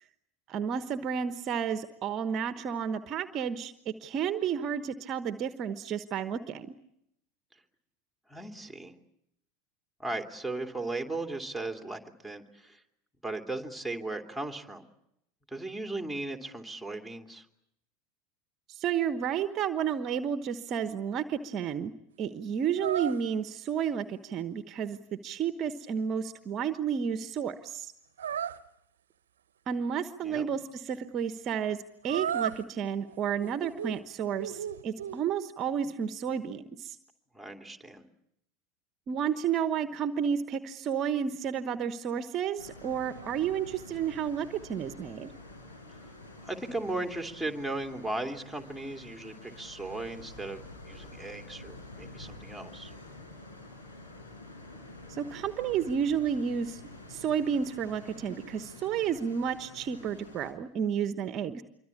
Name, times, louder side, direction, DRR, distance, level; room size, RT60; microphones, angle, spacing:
voice 1, 0.5-6.7 18.7-21.9 22.2-27.9 29.7-31.8 32.0-37.0 39.1-45.3 55.1-56.8 57.1-61.6, right 8 dB, 35° right, 11 dB, 1.1 m, -31 dB
voice 2, 8.3-8.9 10.0-12.8 13.2-14.9 15.5-17.4 30.2-30.5 37.3-38.0 46.4-52.9, right 2 dB, ahead, 3 dB, 2.9 m, -37 dB
sound 1, 22.8-23.2 28.2-28.6 32.0-32.6 33.1-34.0 34.4-35.2, right 8 dB, 70° right, 1.0 m, -34 dB
sound 2, 42.6-60.5, left 2 dB, 75° left, 6.1 m, -48 dB
26.5 x 24.0 x 8.5 m, 0.79 s
figure-of-eight pair, 80°, 0 cm